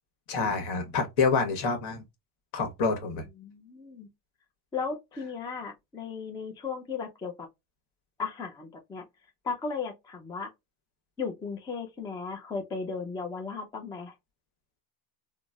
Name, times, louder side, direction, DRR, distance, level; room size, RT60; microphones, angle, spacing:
voice 1, 0.3-2.0 2.5-3.3, left 4 dB, 60° left, 1.2 m, -27 dB
voice 2, 3.4-4.1 4.7-7.5 8.2-9.0 9.4-10.5 11.2-14.1, left 5 dB, 10° left, 0.3 m, -36 dB
3.7 x 2.0 x 2.3 m
supercardioid pair, 120°, 46 cm